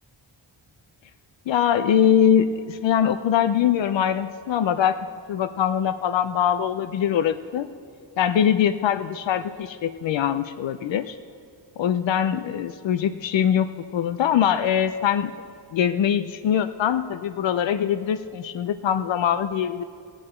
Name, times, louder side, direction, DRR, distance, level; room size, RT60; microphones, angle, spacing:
voice 1, 1.5-5.0 5.3-7.7 8.2-11.2 11.8-15.3 15.7-19.8, left 9 dB, 75° left, 10 dB, 0.5 m, -22 dB
16.0 x 9.0 x 4.3 m, 2.5 s
wide cardioid pair, 110°, 45 cm